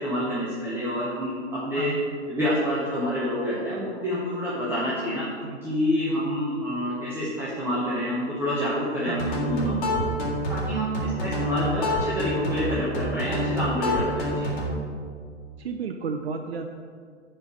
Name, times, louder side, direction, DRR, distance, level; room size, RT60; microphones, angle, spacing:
voice 1, 0.0-1.9 2.3-5.3 5.6-9.9 10.5-14.5, equal, 5° right, -8 dB, 0.9 m, -28 dB
sound 1, 9.2-14.8, equal, 40° left, 2.4 m, -27 dB
voice 2, 15.6-16.7, right 5 dB, 55° right, 5 dB, 0.5 m, -32 dB
7.9 x 4.4 x 6.8 m, 2.1 s
figure-of-eight pair, 120°, 37 cm